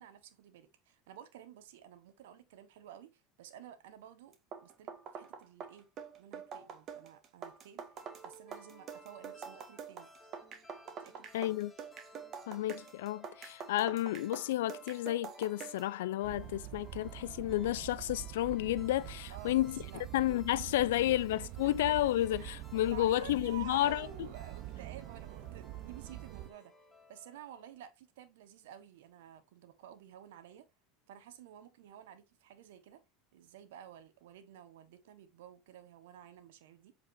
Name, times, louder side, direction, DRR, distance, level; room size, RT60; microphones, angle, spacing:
voice 1, 0.0-4.4 4.6-5.9 6.2-7.9 8.2-10.1 11.0-11.6 19.3-20.0 20.8-21.2 21.6-21.8 22.1-26.7 27.1-30.7 31.1-33.0 33.3-36.9, right 10 dB, 80° right, 1.3 m, -52 dB
sound 1, 4.3-15.9, right 7 dB, 45° right, 1.6 m, -46 dB
sound 2, 8.0-27.9, left 1 dB, 15° left, 3.2 m, -59 dB
voice 2, 11.3-11.7 12.5-19.8 20.1-24.1, left 14 dB, 80° left, 0.5 m, -31 dB
sound 3, 16.2-26.5, right 16 dB, 60° right, 0.6 m, -45 dB
7.7 x 4.8 x 2.7 m
hypercardioid pair, 95°, 0 cm